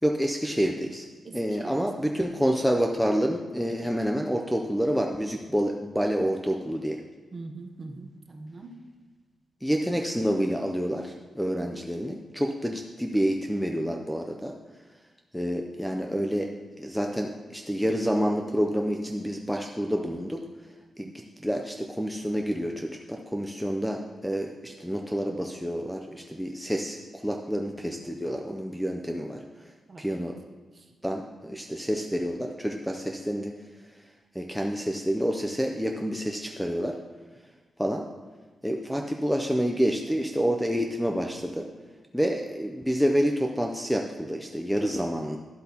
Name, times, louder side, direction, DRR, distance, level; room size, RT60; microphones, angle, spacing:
voice 1, 0.0-1.1 1.3-7.0 9.6-14.5 15.3-16.5 16.8-20.4 21.0-21.1 21.4-29.4 30.0-30.4 31.0-33.5 34.3-37.0 37.8-38.1 38.6-41.7 42.1-45.4, equal, ahead, 2 dB, 0.4 m, -28 dB
voice 2, 1.2-1.8 7.3-8.7 11.6-11.8 21.0-21.3 29.9-30.3 30.7-30.9, right 3 dB, 30° right, 3 dB, 0.8 m, -43 dB
11.0 x 8.0 x 2.8 m, 1.3 s
wide cardioid pair, 180°, 0 cm